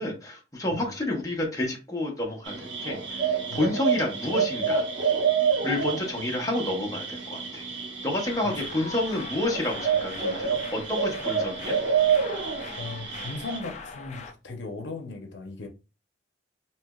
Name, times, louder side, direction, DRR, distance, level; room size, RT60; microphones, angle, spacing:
voice 1, 0.0-4.8 5.6-7.7 8.0-11.8, left 1 dB, 20° left, 0.7 m, -29 dB
sound 1, 2.5-13.6, right 6 dB, 90° right, 1.0 m, -28 dB
sound 2, 8.2-14.3, left 4 dB, 40° left, 0.4 m, -42 dB
voice 2, 12.8-15.7, left 3 dB, 75° left, 0.7 m, -37 dB
3.2 x 2.9 x 2.3 m
head